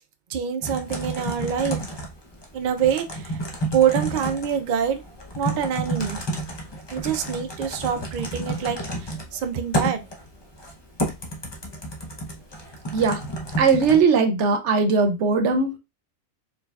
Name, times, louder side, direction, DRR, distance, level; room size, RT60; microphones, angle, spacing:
voice 1, 0.3-1.8 2.5-3.4 3.7-5.0 5.4-6.2 6.9-10.1, right 8 dB, 55° right, 7 dB, 0.6 m, -25 dB
Typing, 0.6-14.0, right 1 dB, 25° left, 0.7 m, -31 dB
voice 2, 13.6-15.8, right 5 dB, 85° right, 6 dB, 1.0 m, -19 dB
4.5 x 3.3 x 2.3 m, 0.25 s
omnidirectional pair, 1.2 m